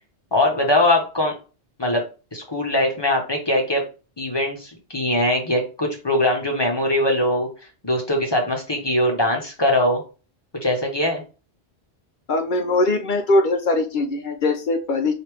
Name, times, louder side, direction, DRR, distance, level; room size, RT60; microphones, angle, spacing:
voice 1, 0.3-1.3 1.8-2.0 2.3-3.8 4.2-7.5 7.8-10.0 10.6-11.2, left 1 dB, 25° left, 1 dB, 1.0 m, -21 dB
voice 2, 12.3-15.1, left 2 dB, 55° left, 6 dB, 0.7 m, -21 dB
4.9 x 2.7 x 3.3 m, 0.33 s
omnidirectional pair, 1.1 m